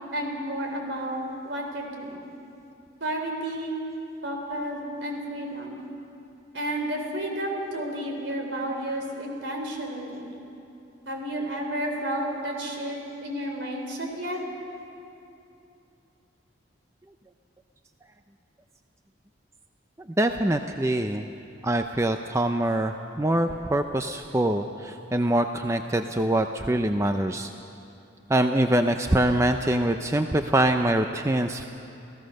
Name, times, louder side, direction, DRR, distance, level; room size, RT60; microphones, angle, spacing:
voice 1, 0.1-2.3 3.0-3.8 4.2-5.8 6.5-10.3 11.1-14.4, right 1 dB, 65° right, 2 dB, 3.9 m, -31 dB
voice 2, 20.2-21.3 21.6-27.5 28.3-31.6, right 1 dB, 15° right, 6 dB, 0.5 m, -24 dB
29.0 x 16.0 x 6.5 m, 2.7 s
head